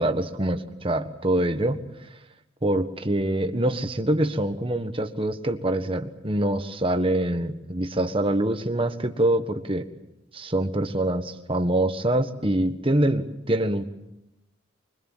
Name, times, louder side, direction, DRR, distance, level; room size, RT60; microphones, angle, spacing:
voice 1, 0.0-1.8 2.6-9.9 10.3-13.8, right 1 dB, 25° right, 7 dB, 1.5 m, -25 dB
25.5 x 23.0 x 7.5 m, 0.88 s
head